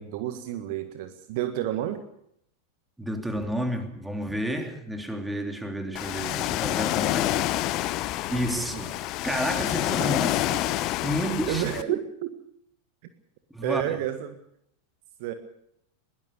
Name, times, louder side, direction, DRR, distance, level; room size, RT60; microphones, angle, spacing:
voice 1, 0.0-2.0 8.6-8.7 10.0-10.2 11.5-12.4 13.6-14.4 15.2-15.3, right 12 dB, 50° right, 9 dB, 1.7 m, -30 dB
voice 2, 3.0-7.5 8.3-8.9 9.2-10.7 11.0-11.9 13.5-13.9, equal, 5° right, 4 dB, 3.3 m, -30 dB
Ocean, 6.0-11.8, left 15 dB, 40° left, 0.9 m, -28 dB
22.0 x 18.0 x 6.8 m, 0.72 s
figure-of-eight pair, 90°, 0 cm